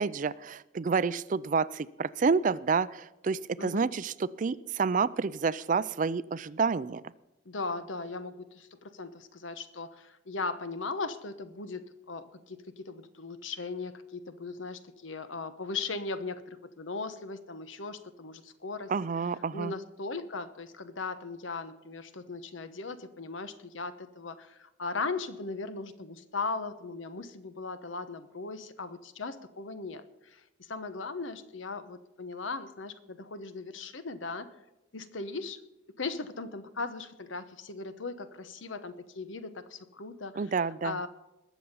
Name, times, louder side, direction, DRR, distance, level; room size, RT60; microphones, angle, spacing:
voice 1, 0.0-7.0 18.9-19.7 40.4-41.0, right 5 dB, 40° right, 18 dB, 0.4 m, -29 dB
voice 2, 3.6-3.9 7.4-18.9 19.5-34.5 34.9-35.6 36.0-40.5 40.8-41.1, left 3 dB, 90° left, 11 dB, 1.0 m, -38 dB
21.0 x 7.1 x 5.5 m, 0.98 s
head